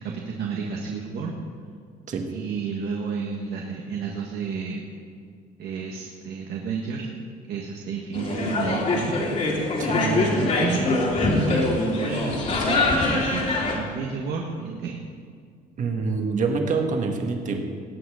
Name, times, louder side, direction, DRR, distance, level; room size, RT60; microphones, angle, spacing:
voice 1, 0.0-1.4 2.3-4.9 5.6-7.1 7.5-9.2 9.9-11.0 11.5-13.5 13.7-15.0, right 5 dB, 75° right, 0 dB, 1.5 m, -31 dB
sound 1, 8.1-13.8, left 2 dB, 45° left, 3.0 m, -23 dB
voice 2, 15.8-17.6, right 4 dB, 50° right, 3 dB, 1.7 m, -26 dB
19.0 x 8.1 x 5.0 m, 2.1 s
cardioid pair, 110°, 17 cm